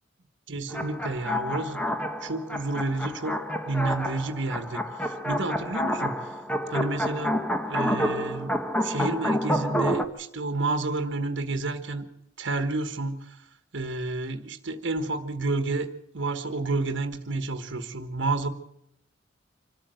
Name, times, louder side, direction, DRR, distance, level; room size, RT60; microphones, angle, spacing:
voice 1, 0.5-1.8 2.2-3.4 3.6-6.4 6.7-7.4 7.7-12.1 12.4-13.4 13.7-15.9 16.1-18.5, right 3 dB, 65° right, 7 dB, 1.4 m, -30 dB
sound 1, 0.7-10.0, equal, 5° left, 1.2 m, -29 dB
26.0 x 13.5 x 7.9 m, 0.77 s
head